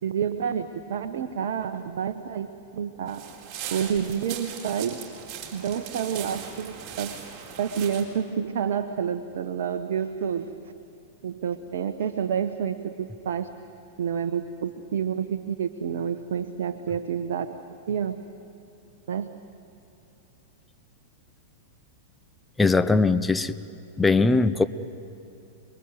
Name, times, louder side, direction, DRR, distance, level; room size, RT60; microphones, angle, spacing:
voice 1, 0.0-2.5 2.7-3.2 3.7-5.0 5.5-7.2 7.6-10.5 11.2-13.5 14.0-17.5 17.9-18.2 19.1-19.3, right 8 dB, 60° right, 7 dB, 1.0 m, -29 dB
sound 1, 3.1-8.0, right 8 dB, 35° right, 4.4 m, -39 dB
voice 2, 22.6-23.5 24.0-24.6, left 3 dB, 10° left, 12 dB, 0.9 m, -20 dB
28.0 x 21.5 x 8.0 m, 2.8 s
figure-of-eight pair, 95°, 0 cm